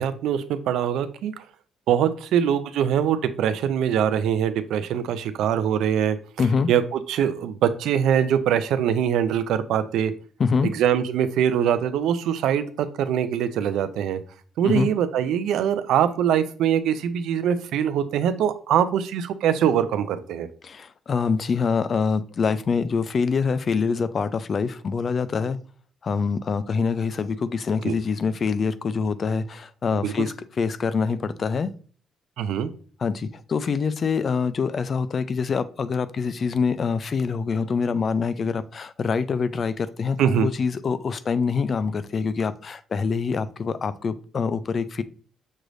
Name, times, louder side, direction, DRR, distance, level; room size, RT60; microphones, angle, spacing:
voice 1, 0.0-1.3 1.9-6.2 6.7-10.1 10.7-14.2 14.6-20.5 27.8-28.0 30.0-30.1 32.4-32.7 40.2-40.5, right 9 dB, 85° right, 12 dB, 0.4 m, -23 dB
voice 2, 6.4-6.7 10.4-10.7 14.7-14.9 20.6-25.6 26.0-31.7 33.0-45.0, left 5 dB, 45° left, 14 dB, 0.4 m, -25 dB
6.3 x 3.1 x 2.6 m, 0.42 s
cardioid pair, 90°, 0 cm